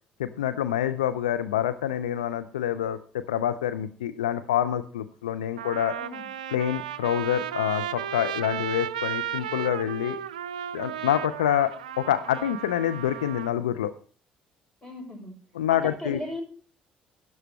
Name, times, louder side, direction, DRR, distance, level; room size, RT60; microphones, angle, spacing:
voice 1, 0.2-6.0 6.5-10.2 10.7-13.9 15.6-16.2, left 11 dB, 80° left, 11 dB, 0.5 m, -27 dB
Trumpet, 4.8-4.9 5.6-13.5, right 9 dB, 85° right, 0.4 m, -34 dB
voice 2, 14.8-15.3 15.7-16.4, left 1 dB, 20° left, 2 dB, 7.0 m, -37 dB
12.5 x 11.0 x 3.1 m, 0.41 s
figure-of-eight pair, 50°, 4 cm